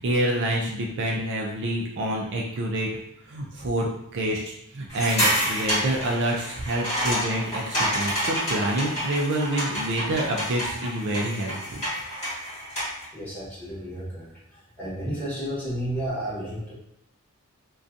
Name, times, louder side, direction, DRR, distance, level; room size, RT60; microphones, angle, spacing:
voice 1, 0.0-2.9 3.3-11.8, right 1 dB, 55° right, -1 dB, 0.4 m, -27 dB
sound 1, 4.9-13.0, equal, 30° left, 1.4 m, -28 dB
voice 2, 13.1-14.3 14.5-16.7, equal, 10° left, -10 dB, 1.1 m, -32 dB
2.6 x 2.3 x 2.4 m, 0.75 s
head